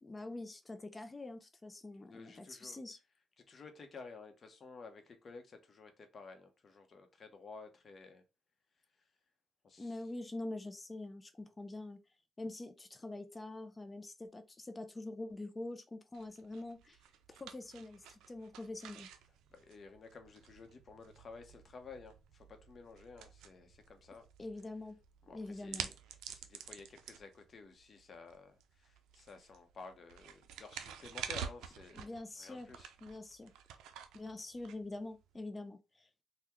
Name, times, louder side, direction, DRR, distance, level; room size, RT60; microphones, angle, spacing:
voice 1, 0.0-3.0 9.8-12.0 12.4-17.0 17.4-19.1 24.4-25.0 25.3-25.9 31.9-32.7 33.0-33.5 34.1-36.1, left 2 dB, 25° left, 0.4 m, -45 dB
voice 2, 2.1-2.8 3.4-8.2 9.6-10.0 19.5-24.3 25.2-25.9 26.3-32.9, left 4 dB, 45° left, 0.7 m, -53 dB
sound 1, 16.1-35.4, right 8 dB, 90° right, 0.4 m, -50 dB
3.4 x 2.2 x 2.9 m
cardioid pair, 90°, 0 cm